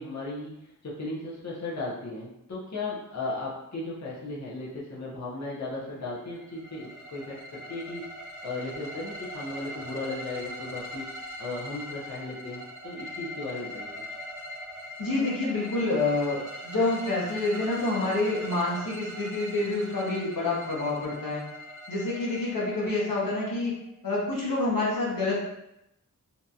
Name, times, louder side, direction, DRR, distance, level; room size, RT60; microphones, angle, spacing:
voice 1, 0.0-8.1 8.4-11.1 11.4-13.9, left 2 dB, 55° left, -6 dB, 0.8 m, -36 dB
sound 1, 6.1-23.9, equal, 65° right, 0.6 m, -41 dB
voice 2, 15.0-16.4 16.6-21.4 21.9-23.7 24.0-25.4, left 2 dB, 85° left, -6 dB, 0.9 m, -27 dB
2.8 x 2.6 x 2.3 m, 0.83 s
wide cardioid pair, 45°, 33 cm